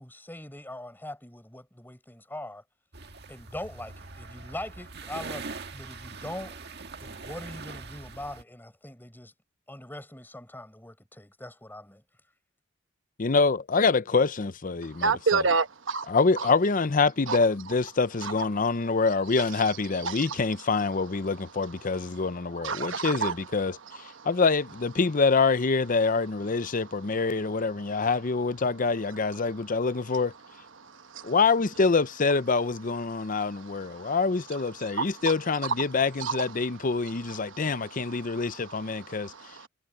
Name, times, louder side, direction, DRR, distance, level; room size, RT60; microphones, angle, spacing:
voice 1, 0.0-2.6 3.3-6.6 7.0-9.3 9.7-12.0, left 1 dB, 10° left, 5.6 m, -41 dB
sound 1, 2.9-8.4, right 4 dB, 55° right, 1.7 m, -42 dB
voice 2, 13.2-15.5 16.1-30.3 31.2-39.3, left 4 dB, 45° left, 0.7 m, -26 dB
voice 3, 15.0-16.1 17.3-17.4 18.2-18.3 20.0-20.1 22.6-23.3 31.1-31.3 34.0-34.1 35.0-35.1 36.2-36.3 37.5-37.6 39.1-39.7, right 5 dB, 70° right, 1.1 m, -28 dB
head